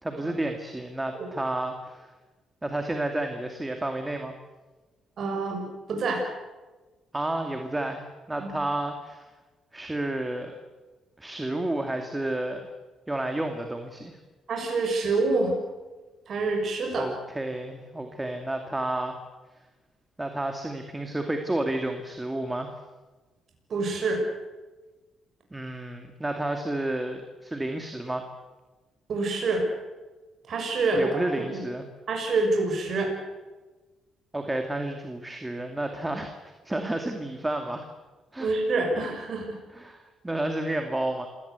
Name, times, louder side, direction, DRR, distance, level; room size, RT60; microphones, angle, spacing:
voice 1, 0.0-2.1 2.6-4.3 7.1-9.3 9.7-10.5 11.2-12.6 13.1-14.2 17.0-19.2 20.2-22.8 25.5-28.3 30.9-31.9 34.3-36.3 36.6-37.9 38.3-38.5 39.7-41.3, right 1 dB, 15° right, 5 dB, 2.3 m, -31 dB
voice 2, 5.2-6.2 8.4-8.5 14.5-15.5 16.3-17.1 23.7-24.2 29.1-29.6 30.5-31.6 32.1-33.1 38.4-39.5, right 3 dB, 55° right, 2 dB, 6.6 m, -26 dB
27.5 x 17.0 x 8.2 m, 1.2 s
cardioid pair, 90°, 0 cm